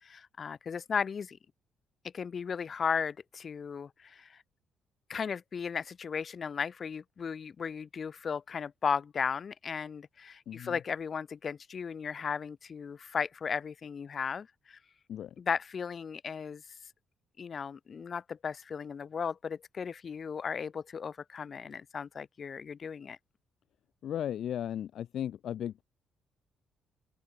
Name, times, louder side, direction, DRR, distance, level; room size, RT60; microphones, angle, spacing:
voice 1, 0.0-1.4 2.1-4.4 5.1-14.8 15.4-16.6 17.4-23.2, left 6 dB, 45° left, 2.1 m, -36 dB
voice 2, 10.5-10.8 15.1-15.3 24.0-25.8, left 10 dB, 70° left, 4.9 m, -36 dB
cardioid pair, 90°, 0 cm